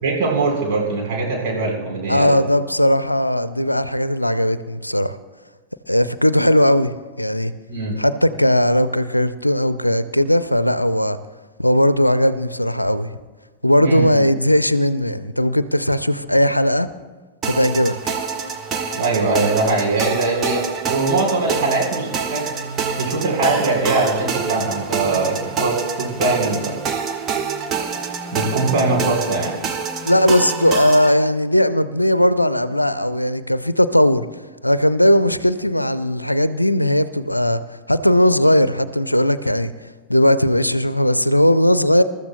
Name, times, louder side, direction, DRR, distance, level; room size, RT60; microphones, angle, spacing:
voice 1, 0.0-2.4 7.7-8.0 13.8-14.1 18.9-22.5 23.0-26.8 28.3-29.5, right 3 dB, 45° right, -2 dB, 4.2 m, -21 dB
voice 2, 2.1-5.2 5.9-7.5 8.0-11.2 11.6-13.1 13.6-16.9 17.5-18.2 30.0-34.3 34.6-37.6 37.9-39.7 40.1-42.0, left 1 dB, 85° left, 14 dB, 0.5 m, -18 dB
sound 1, 17.4-31.1, right 5 dB, 30° right, 1.2 m, -26 dB
26.5 x 13.5 x 2.2 m, 1.3 s
figure-of-eight pair, 90°, 0 cm